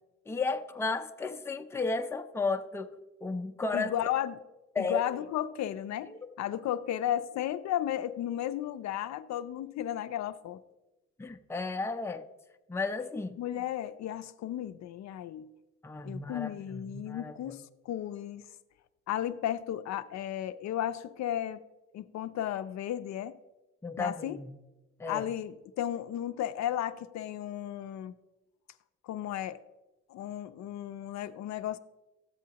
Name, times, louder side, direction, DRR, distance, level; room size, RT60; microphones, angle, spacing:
voice 1, 0.3-3.9 4.8-5.1 6.1-6.2 11.2-12.3 12.7-13.4 15.8-17.6 23.8-24.6 25.0-25.3, left 3 dB, 10° left, 0.5 m, -34 dB
voice 2, 3.7-4.3 4.8-10.6 13.4-15.5 16.0-18.4 19.1-21.6 21.9-23.3 24.0-24.4 25.1-28.1 29.0-29.6 30.1-31.8, left 11 dB, 65° left, 0.4 m, -34 dB
13.5 x 7.3 x 2.9 m
cardioid pair, 90°, 30 cm